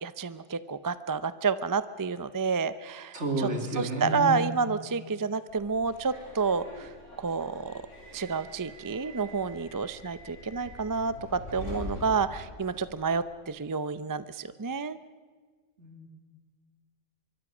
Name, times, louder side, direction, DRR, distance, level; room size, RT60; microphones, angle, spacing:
voice 1, 0.0-7.7 8.1-15.0, right 5 dB, 25° right, 13 dB, 0.5 m, -30 dB
voice 2, 3.1-4.4 15.8-16.1, equal, 70° right, 3 dB, 3.2 m, -31 dB
Subway metro underground, 5.5-13.1, left 1 dB, 80° left, 6.8 m, -44 dB
25.0 x 23.5 x 6.1 m, 1.5 s
omnidirectional pair, 1.3 m